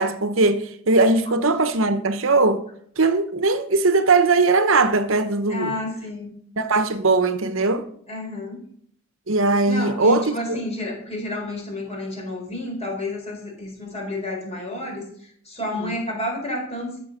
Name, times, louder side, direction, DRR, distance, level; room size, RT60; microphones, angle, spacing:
voice 1, 0.0-2.6 3.0-5.8 6.6-7.9 9.3-10.6 15.8-15.9, right 3 dB, 60° right, 1.0 m, -20 dB
voice 2, 5.5-6.3 8.1-8.6 9.7-17.0, left 1 dB, 30° left, 4.4 m, -30 dB
13.5 x 7.0 x 6.6 m
head